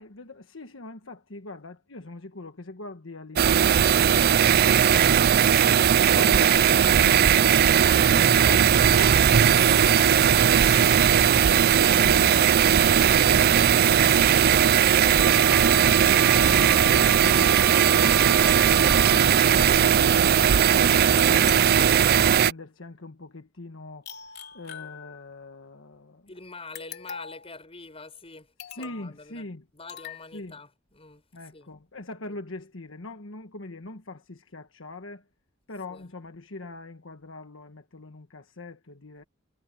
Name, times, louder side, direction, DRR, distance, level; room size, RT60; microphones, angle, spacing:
voice 1, 0.0-5.2 5.6-11.3 11.8-12.9 13.2-22.0 22.4-26.3 28.7-29.6 30.3-30.6 31.3-35.2 35.7-39.2, left 2 dB, 75° left, 1.4 m, -42 dB
sound 1, 3.4-22.5, right 8 dB, 50° right, 0.4 m, -18 dB
Wind instrument woodwind instrument, 15.2-19.3, right 1 dB, 5° right, 1.3 m, -36 dB
sound 2, 21.2-22.6 24.0-25.5 26.7-27.5 28.6-29.1 29.9-30.2, left 7 dB, 55° left, 4.1 m, -41 dB
voice 2, 26.3-31.7 32.3-32.4 35.9-36.1, left 3 dB, 30° left, 7.3 m, -45 dB
head